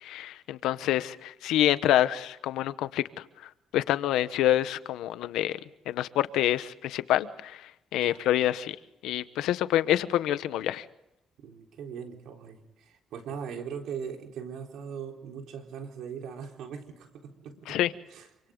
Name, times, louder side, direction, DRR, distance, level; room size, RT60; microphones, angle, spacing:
voice 1, 0.0-3.0 3.7-5.6 5.9-7.5 7.9-8.7 9.0-10.8 17.7-17.9, left 13 dB, 90° left, 13 dB, 1.0 m, -26 dB
voice 2, 11.4-17.8 18.1-18.3, right 7 dB, 80° right, 2 dB, 4.1 m, -40 dB
28.0 x 26.0 x 3.9 m, 0.88 s
cardioid pair, 90°, 0 cm